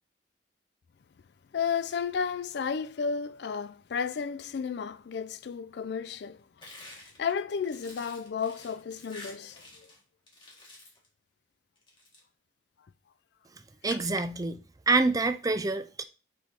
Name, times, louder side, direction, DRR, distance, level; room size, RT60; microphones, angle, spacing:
voice 1, 1.5-9.9 13.8-14.0, left 6 dB, 60° left, 0.4 m, -33 dB
sound 1, 6.6-10.0 10.3-11.1 11.8-12.2, left 2 dB, 25° left, 1.9 m, -49 dB
voice 2, 13.8-14.6 14.9-16.0, right 3 dB, 20° right, 0.4 m, -26 dB
6.1 x 3.6 x 4.7 m
head